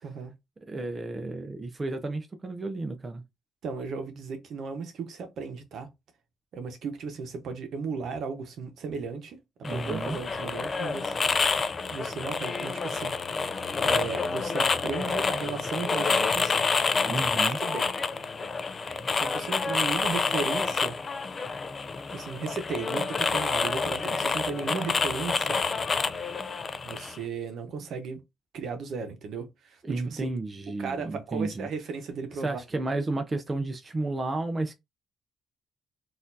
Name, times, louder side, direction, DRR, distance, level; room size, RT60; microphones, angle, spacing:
voice 1, 0.0-0.3 3.6-5.9 6.5-9.4 9.7-11.5 11.9-13.1 13.9-16.6 17.6-17.9 19.1-21.0 22.1-25.6 26.8-28.2 28.5-30.3 30.8-32.6, right 5 dB, 70° right, 1.0 m, -35 dB
voice 2, 0.7-3.2 9.6-10.2 17.0-17.6 29.8-31.7 32.4-34.7, right 2 dB, 30° right, 0.6 m, -32 dB
sound 1, 9.6-27.2, left 4 dB, 35° left, 0.4 m, -28 dB
4.0 x 2.6 x 2.7 m
cardioid pair, 90°, 0 cm